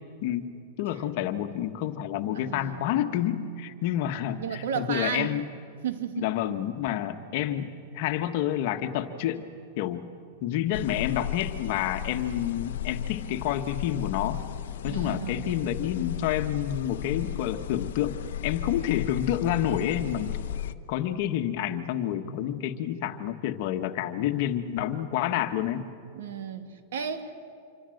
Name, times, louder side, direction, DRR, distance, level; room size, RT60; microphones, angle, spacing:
voice 1, 0.2-0.5 0.8-5.4 6.2-9.5 9.8-10.0 10.4-14.4 14.8-20.4 20.9-25.9, left 11 dB, 50° left, 8 dB, 1.4 m, -29 dB
voice 2, 2.3-2.9 4.4-5.4 5.8-6.3 14.8-15.9 26.1-27.4, right 8 dB, 75° right, 7 dB, 2.3 m, -34 dB
sound 1, 10.7-20.7, left 11 dB, 80° left, 0.9 m, -35 dB
26.5 x 24.5 x 7.9 m, 2.3 s
supercardioid pair, 155°, 0 cm